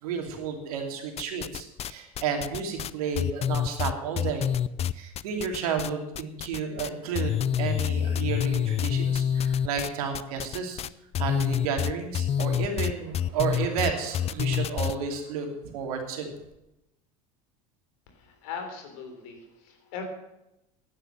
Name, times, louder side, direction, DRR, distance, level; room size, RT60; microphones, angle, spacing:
voice 1, 0.0-4.5 4.9-10.8 11.2-15.5 15.7-16.3, right 6 dB, 80° right, 3 dB, 2.9 m, -32 dB
sound 1, 1.2-1.9 2.2-5.9 6.1-6.9 7.1-15.0, left 9 dB, 35° left, 0.5 m, -27 dB
voice 2, 18.1-20.1, left 6 dB, 75° left, 5 dB, 3.6 m, -40 dB
11.0 x 9.9 x 7.5 m, 0.89 s
hypercardioid pair, 95°, 18 cm